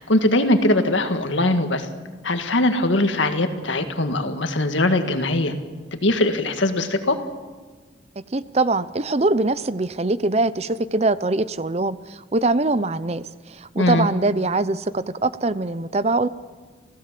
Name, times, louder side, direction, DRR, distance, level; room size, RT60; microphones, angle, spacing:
voice 1, 0.0-1.9 2.2-5.5 5.9-7.2 13.8-14.1, left 1 dB, 80° left, 7 dB, 1.9 m, -21 dB
voice 2, 8.2-16.3, right 2 dB, 35° right, 15 dB, 0.6 m, -23 dB
28.5 x 16.0 x 7.6 m, 1.4 s
head